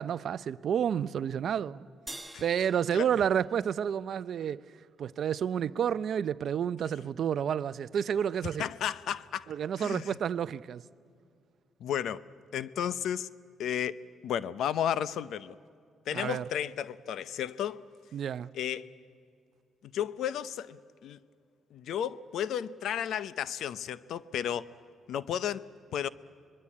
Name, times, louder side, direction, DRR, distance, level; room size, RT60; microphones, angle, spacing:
voice 1, 0.0-1.9 2.4-4.6 5.0-8.7 9.5-10.8 16.1-16.4 18.1-18.5, right 8 dB, 60° right, 0.6 m, -30 dB
sound 1, 2.1-4.6, right 1 dB, 5° right, 1.3 m, -48 dB
voice 2, 8.6-9.5 9.8-10.2 11.8-12.2 12.5-13.3 13.6-15.5 16.1-17.8 18.5-18.9 19.9-21.2 21.7-24.7 25.1-25.7 25.9-26.1, left 9 dB, 75° left, 0.7 m, -33 dB
26.0 x 21.5 x 8.5 m
cardioid pair, 90°, 0 cm